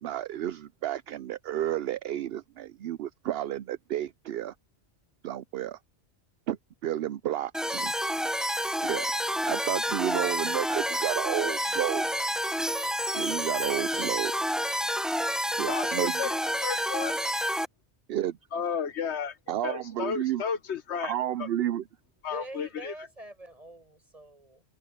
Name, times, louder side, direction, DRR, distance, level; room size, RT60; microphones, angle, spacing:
voice 1, 0.0-4.5 5.2-5.8 6.5-6.6 6.8-7.9 8.8-9.1 9.5-12.0 13.1-14.3 15.6-16.1 18.1-18.4 19.5-20.4 21.0-21.8, right 12 dB, 70° right, 0.8 m, -31 dB
sound 1, 7.5-17.7, equal, ahead, 0.7 m, -29 dB
voice 2, 15.6-17.2 18.5-19.4 19.6-21.5 22.2-22.9, left 7 dB, 80° left, 1.3 m, -33 dB
voice 3, 22.3-24.6, right 1 dB, 35° right, 5.5 m, -45 dB
omnidirectional pair, 1.1 m